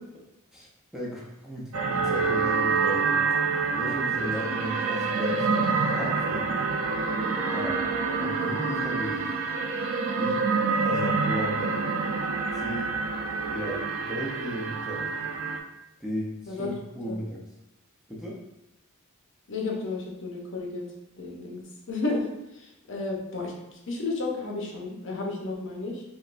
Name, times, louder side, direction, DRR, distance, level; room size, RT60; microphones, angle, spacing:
voice 1, 0.9-3.2 3.7-6.5 7.5-7.8 8.2-9.3 10.2-10.5 10.8-11.8 12.6-13.0 13.5-15.1 16.0-17.4 18.1-18.4, equal, 5° right, -5 dB, 0.6 m, -35 dB
sound 1, 1.7-15.6, right 4 dB, 70° right, 0.5 m, -27 dB
voice 2, 19.5-20.9 21.1-21.6 21.9-22.2 22.5-26.0, left 3 dB, 60° left, -1 dB, 0.7 m, -32 dB
5.0 x 2.1 x 2.5 m, 0.93 s
head